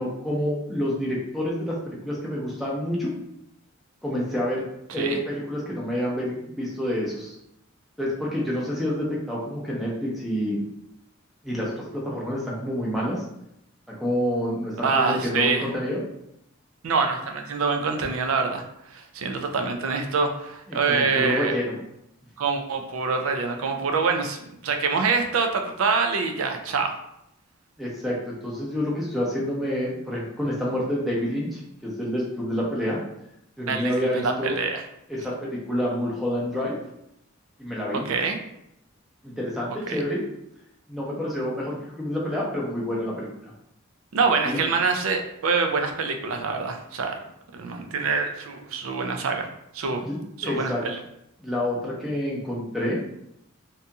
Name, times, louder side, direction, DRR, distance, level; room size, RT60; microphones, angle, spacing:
voice 1, 0.0-3.1 4.0-4.6 4.9-7.3 8.0-10.6 11.4-13.2 14.0-16.0 20.7-21.8 27.8-33.0 33.6-34.6 35.1-36.7 37.6-38.1 39.2-40.2 40.9-43.3 44.4-44.6 50.0-50.8 51.4-53.0, equal, ahead, -5 dB, 0.5 m, -28 dB
voice 2, 4.9-5.2 14.8-15.7 16.8-18.6 18.9-21.5 22.4-24.4 24.6-26.9 33.7-34.8 38.1-38.4 39.9-40.0 44.1-47.1 47.5-49.5 49.7-51.0, right 4 dB, 85° right, 4 dB, 0.4 m, -25 dB
2.7 x 2.7 x 2.3 m, 0.79 s
head